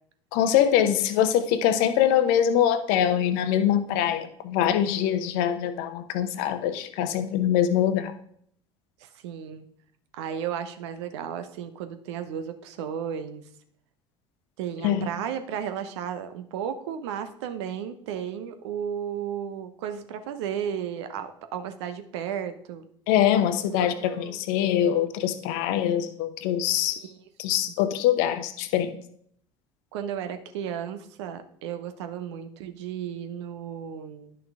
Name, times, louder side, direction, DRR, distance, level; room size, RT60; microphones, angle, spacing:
voice 1, 0.3-8.1 14.8-15.1 23.1-27.0 27.4-29.0, left 10 dB, 60° left, 10 dB, 0.9 m, -23 dB
voice 2, 9.0-9.7 10.2-13.4 14.6-22.9 23.8-24.4 27.0-27.2 29.9-34.4, right 8 dB, 70° right, 9 dB, 0.8 m, -34 dB
10.5 x 5.9 x 3.6 m, 0.66 s
figure-of-eight pair, 65°, 15 cm